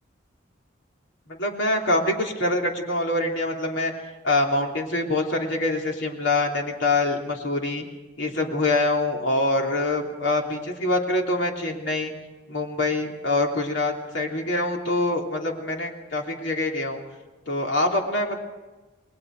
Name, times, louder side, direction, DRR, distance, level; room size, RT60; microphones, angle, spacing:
voice 1, 1.3-3.9 4.2-7.8 8.2-12.1 12.5-17.0 17.5-18.4, left 2 dB, 65° left, 1 dB, 3.3 m, -25 dB
29.5 x 20.5 x 4.9 m, 1.2 s
head